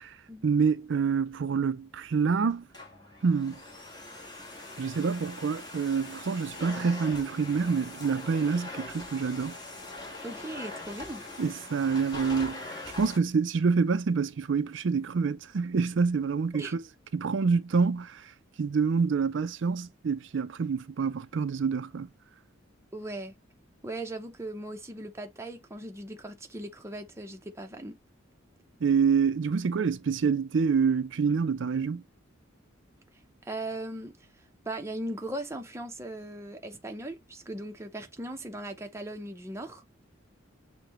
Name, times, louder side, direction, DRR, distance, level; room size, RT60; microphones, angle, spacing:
voice 1, 0.4-2.6 3.2-3.6 4.8-9.6 11.4-12.6 13.0-16.8 17.1-18.3 18.6-22.1 28.8-32.0, right 5 dB, 60° right, 0.4 m, -27 dB
Domestic sounds home sounds, 2.5-13.2, left 2 dB, 20° left, 1.4 m, -42 dB
voice 2, 10.2-11.2 16.5-16.8 22.9-23.4 23.8-28.0 33.4-34.2 34.7-39.8, right 1 dB, 15° right, 0.7 m, -38 dB
6.6 x 2.2 x 2.9 m
head